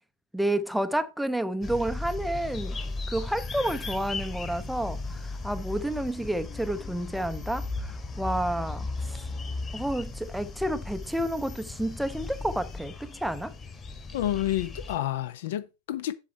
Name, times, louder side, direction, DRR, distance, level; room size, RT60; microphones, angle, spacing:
voice 1, 0.3-2.8 3.1-9.3 9.7-13.5, right 1 dB, ahead, 0.6 m, -30 dB
sound 1, 1.6-15.0, left 3 dB, 20° left, 1.7 m, -36 dB
voice 2, 14.1-16.1, left 13 dB, 55° left, 0.7 m, -29 dB
7.4 x 7.3 x 4.3 m
figure-of-eight pair, 90°, 0 cm